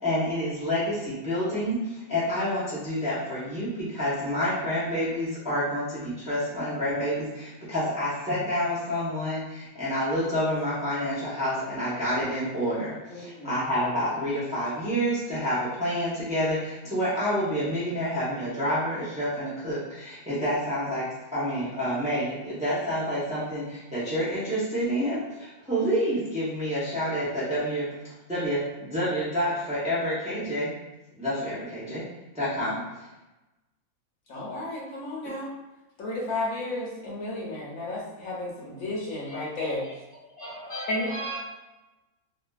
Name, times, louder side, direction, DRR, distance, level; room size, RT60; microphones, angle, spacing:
voice 1, 0.0-21.1 21.3-27.8 28.3-30.7 31.2-32.0 32.3-32.8, equal, 10° right, -10 dB, 0.4 m, -28 dB
voice 2, 13.1-13.5 34.3-35.5 36.0-39.8 40.9-41.1, left 2 dB, 70° left, -5 dB, 1.1 m, -32 dB
voice 3, 39.2-39.9 40.4-41.4, right 1 dB, 25° left, -9 dB, 0.9 m, -38 dB
2.5 x 2.5 x 2.3 m, 1.0 s
omnidirectional pair, 1.6 m